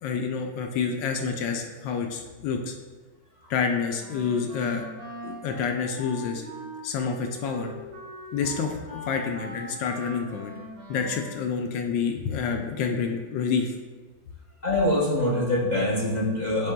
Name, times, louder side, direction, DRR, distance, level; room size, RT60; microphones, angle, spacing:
voice 1, 0.0-2.7 3.5-4.9 5.2-6.4 6.8-7.7 8.3-10.5 10.9-13.7, left 6 dB, 80° left, 3 dB, 1.3 m, -28 dB
Wind instrument woodwind instrument, 4.0-11.5, right 1 dB, 50° right, 1.8 m, -41 dB
voice 2, 14.6-16.7, left 1 dB, 45° left, -6 dB, 0.5 m, -24 dB
9.9 x 4.5 x 2.2 m, 1.4 s
omnidirectional pair, 2.0 m